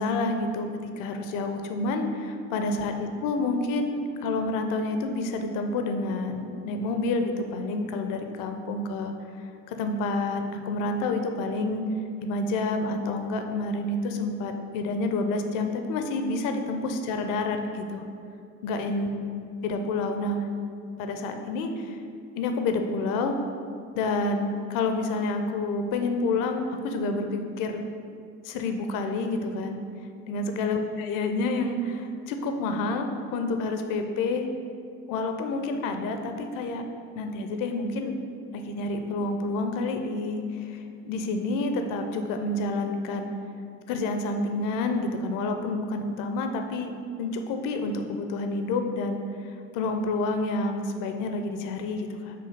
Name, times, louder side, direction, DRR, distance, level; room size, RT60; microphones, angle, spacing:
voice 1, 0.0-9.1 9.7-11.9 12.2-18.0 18.6-19.1 19.6-20.5 21.0-22.0 22.4-23.4 23.9-27.8 28.4-29.8 30.3-34.5 35.1-36.8 37.2-38.1 38.5-43.3 43.9-46.9 47.2-52.3, left 2 dB, 50° left, 5 dB, 0.7 m, -29 dB
7.1 x 3.0 x 4.8 m, 2.5 s
figure-of-eight pair, 55°, 41 cm